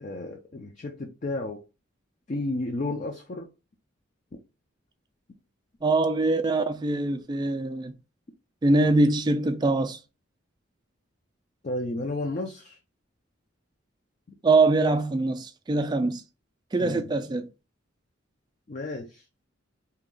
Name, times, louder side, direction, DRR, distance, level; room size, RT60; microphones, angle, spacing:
voice 1, 0.0-1.6 2.3-3.5 11.6-12.8 16.8-17.0 18.7-19.2, left 2 dB, 40° left, 0.5 m, -32 dB
voice 2, 5.8-7.9 8.6-10.0 14.4-16.2 16.7-17.5, right 2 dB, 20° right, 0.3 m, -23 dB
2.8 x 2.4 x 3.6 m
head